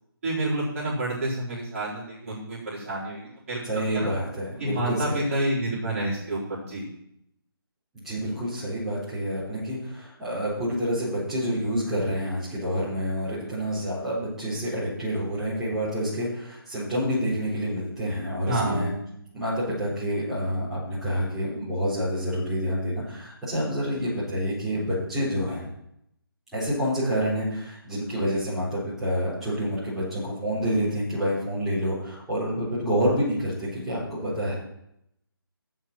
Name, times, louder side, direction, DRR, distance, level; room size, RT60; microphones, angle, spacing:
voice 1, 0.2-4.1 4.6-6.9 18.5-18.9, right 1 dB, 35° right, -7 dB, 4.2 m, -29 dB
voice 2, 3.6-5.2 7.9-18.9 19.3-25.7 26.5-34.5, equal, 5° right, -13 dB, 4.3 m, -28 dB
8.2 x 7.4 x 7.5 m, 0.77 s
figure-of-eight pair, 165°, 13 cm